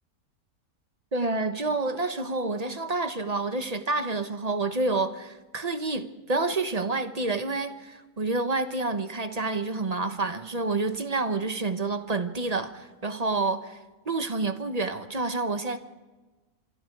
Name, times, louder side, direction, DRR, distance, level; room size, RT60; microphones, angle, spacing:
voice 1, 1.1-13.8 14.1-15.8, right 3 dB, 30° right, 1.1 m, -28 dB
25.5 x 24.5 x 4.8 m
omnidirectional pair, 1.6 m